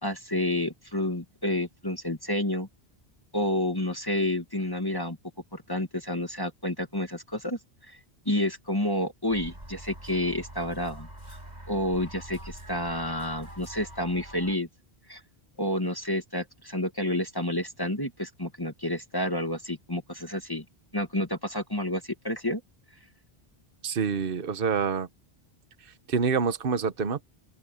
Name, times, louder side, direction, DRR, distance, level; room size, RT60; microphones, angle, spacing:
voice 1, 0.0-2.7 3.3-5.2 5.5-8.0 8.3-11.4 11.7-14.7 15.1-15.2 15.6-20.6 20.9-22.6, left 1 dB, 20° left, 2.0 m, -30 dB
sound 1, 9.3-14.6, right 1 dB, 40° right, 7.3 m, -44 dB
voice 2, 23.8-25.1 26.1-27.2, right 6 dB, 60° right, 1.2 m, -26 dB
open air
omnidirectional pair, 1.1 m